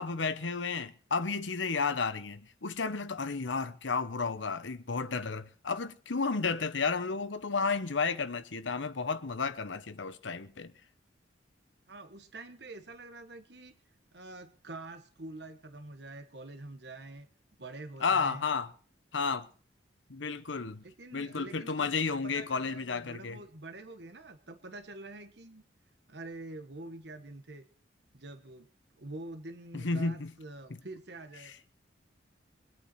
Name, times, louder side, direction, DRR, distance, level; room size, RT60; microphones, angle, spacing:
voice 1, 0.0-10.7 18.0-18.7 19.1-19.5 20.1-20.8 21.1-23.4 29.7-30.3 30.7-30.8, left 4 dB, 85° left, 1.0 m, -32 dB
voice 2, 11.9-13.7 14.1-17.3 17.6-18.4 20.8-25.6 26.1-27.6 28.1-28.7 29.0-31.5, right 2 dB, 65° right, 1.3 m, -46 dB
23.5 x 8.9 x 4.2 m
head